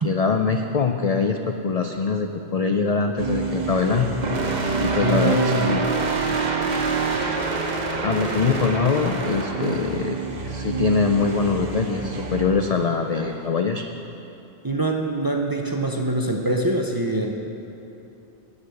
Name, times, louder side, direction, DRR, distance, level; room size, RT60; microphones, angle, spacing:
voice 1, 0.0-4.1 4.8-5.9 8.0-13.8, left 5 dB, 55° left, 5 dB, 0.4 m, -23 dB
sound 1, 3.2-13.5, right 4 dB, 45° right, 0.9 m, -27 dB
voice 2, 5.0-5.8 14.6-17.3, right 2 dB, 25° right, 2 dB, 0.5 m, -24 dB
9.9 x 8.0 x 6.9 m, 2.9 s
omnidirectional pair, 1.2 m